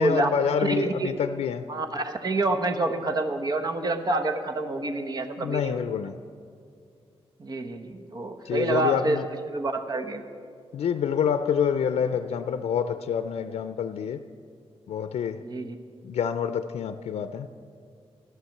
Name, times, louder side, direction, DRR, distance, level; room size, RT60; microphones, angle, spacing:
voice 1, 0.0-1.7 5.4-6.1 8.4-9.3 10.7-14.2 14.9-15.4 16.0-17.5, left 7 dB, 85° left, 10 dB, 0.5 m, -27 dB
voice 2, 0.6-1.1 1.7-5.8 7.4-9.2 9.5-10.2 15.4-15.8, right 2 dB, 40° right, 6 dB, 1.0 m, -27 dB
15.0 x 11.0 x 7.2 m, 2.3 s
wide cardioid pair, 150°, 11 cm